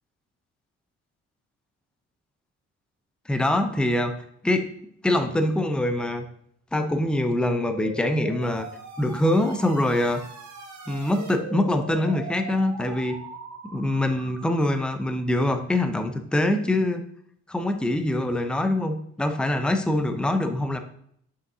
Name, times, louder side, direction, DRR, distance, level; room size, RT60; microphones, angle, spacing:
voice 1, 3.3-4.1 4.4-4.7 5.0-6.2 6.7-8.7 9.0-10.2 10.9-13.1 13.7-17.0 17.5-20.8, left 1 dB, 5° left, 7 dB, 0.6 m, -24 dB
sound 1, 7.5-15.0, right 3 dB, 65° right, 1.6 m, -40 dB
6.2 x 5.5 x 2.7 m, 0.67 s
cardioid pair, 90°, 30 cm